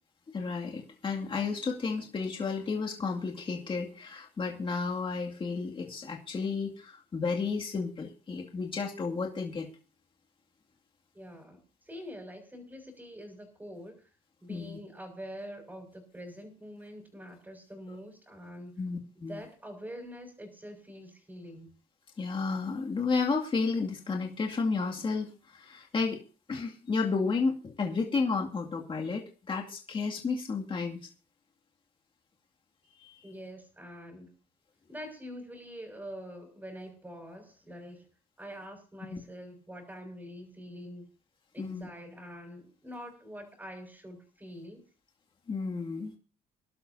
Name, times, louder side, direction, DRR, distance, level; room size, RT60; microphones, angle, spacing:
voice 1, 0.3-9.7 14.5-14.8 18.8-19.4 22.2-26.2 26.5-31.1 33.0-33.1 39.1-39.2 41.6-41.9 45.5-46.1, left 4 dB, 30° left, 1 dB, 2.3 m, -32 dB
voice 2, 11.1-11.6 11.9-14.0 14.4-18.7 19.2-21.7 33.2-34.3 34.9-38.1 38.4-41.1 41.5-44.8, equal, 10° right, 2 dB, 5.3 m, -45 dB
25.5 x 12.0 x 2.7 m, 0.34 s
cardioid pair, 110°, 17 cm